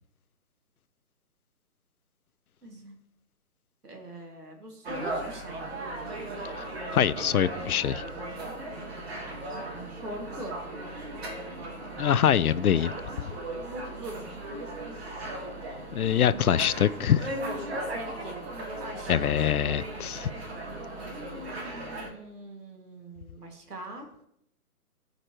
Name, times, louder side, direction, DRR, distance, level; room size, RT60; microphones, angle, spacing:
voice 1, 2.6-3.0 3.8-5.8 9.5-10.5 13.7-14.3 17.9-18.4 18.8-19.1 20.7-24.1, right 1 dB, 85° right, 1 dB, 2.4 m, -42 dB
sound 1, 4.8-22.1, right 1 dB, 45° right, 1.8 m, -37 dB
voice 2, 6.5-8.0 12.0-12.9 15.9-17.3 19.1-20.3, left 9 dB, 70° left, 18 dB, 0.6 m, -24 dB
15.0 x 5.2 x 3.1 m, 0.73 s
figure-of-eight pair, 145°, 45 cm